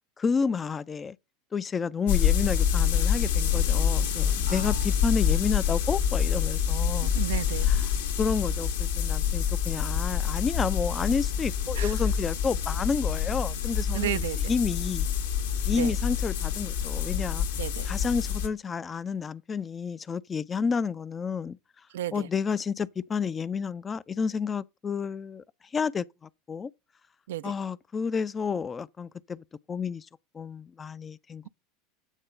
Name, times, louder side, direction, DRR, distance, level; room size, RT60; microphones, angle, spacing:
voice 1, 0.2-1.2 1.5-7.1 8.2-14.2 14.5-15.1 15.6-17.5 17.9-21.6 22.1-25.4 25.7-26.0 26.5-26.7 27.4-30.1 30.3-31.4, left 5 dB, 25° left, 0.4 m, -30 dB
sound 1, 2.1-18.5, left 8 dB, 65° left, 1.3 m, -26 dB
voice 2, 4.4-4.9 7.0-7.7 11.7-12.0 13.9-14.5 15.7-15.9 17.6-17.9 21.9-22.3 27.3-27.5, right 13 dB, 65° right, 0.4 m, -33 dB
9.1 x 3.7 x 6.4 m
figure-of-eight pair, 80°, 0 cm